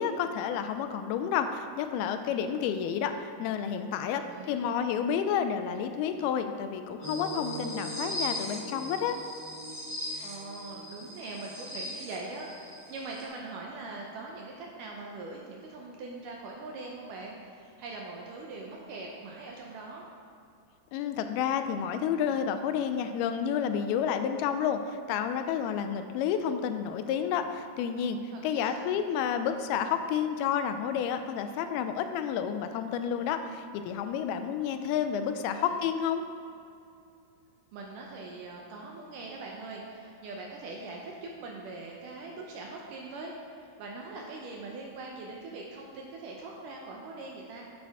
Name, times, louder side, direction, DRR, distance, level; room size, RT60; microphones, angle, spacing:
voice 1, 0.0-4.2 4.5-9.2 20.9-36.2, left 8 dB, 85° left, 8 dB, 2.4 m, -30 dB
voice 2, 4.1-4.7 10.2-20.0 28.3-29.0 35.2-35.8 37.7-47.6, right 3 dB, 75° right, -1 dB, 2.0 m, -42 dB
sound 1, 7.0-13.2, equal, 25° right, 0.8 m, -38 dB
9.3 x 9.2 x 3.5 m, 2.4 s
omnidirectional pair, 4.5 m